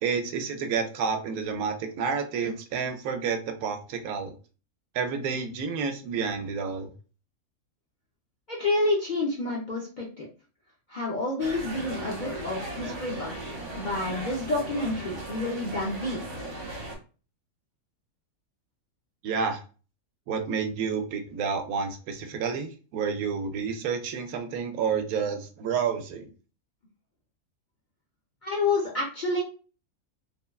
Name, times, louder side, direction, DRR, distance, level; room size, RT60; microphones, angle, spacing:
voice 1, 0.0-4.3 4.9-6.9 19.2-19.6 20.3-26.3, right 6 dB, 80° right, 6 dB, 1.0 m, -30 dB
voice 2, 8.5-10.3 10.9-16.2 28.4-29.4, left 2 dB, 55° left, -4 dB, 0.5 m, -29 dB
sound 1, 11.4-17.0, right 2 dB, 60° right, 1.3 m, -37 dB
3.3 x 2.1 x 2.3 m, 0.36 s
omnidirectional pair, 1.5 m